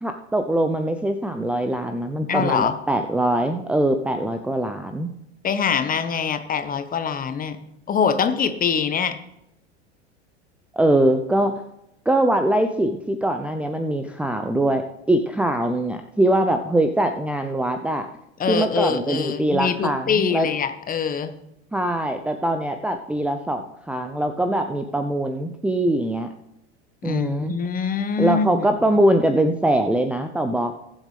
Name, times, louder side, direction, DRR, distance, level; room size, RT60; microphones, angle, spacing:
voice 1, 0.0-5.1 10.7-11.5 12.1-18.1 18.5-20.5 21.7-26.3 27.0-27.6 28.2-30.8, right 1 dB, 5° right, 4 dB, 0.6 m, -22 dB
voice 2, 2.3-2.8 5.4-7.6 7.9-9.1 18.4-21.3 27.0-28.6, left 6 dB, 25° left, 9 dB, 1.3 m, -24 dB
21.0 x 7.5 x 3.4 m, 0.82 s
figure-of-eight pair, 85°, 34 cm